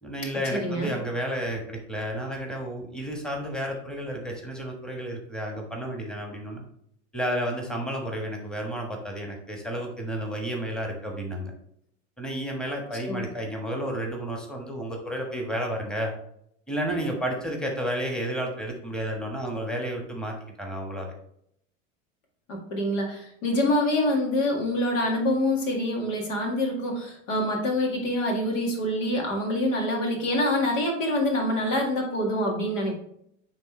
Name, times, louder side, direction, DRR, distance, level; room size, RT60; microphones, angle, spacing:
voice 1, 0.0-6.6 7.1-11.5 12.2-16.1 16.7-21.1, equal, ahead, 1 dB, 1.3 m, -31 dB
voice 2, 0.5-0.9 13.0-13.2 22.5-33.0, left 1 dB, 75° left, 1 dB, 1.9 m, -26 dB
9.2 x 3.5 x 3.2 m, 0.71 s
hypercardioid pair, 95°, 39 cm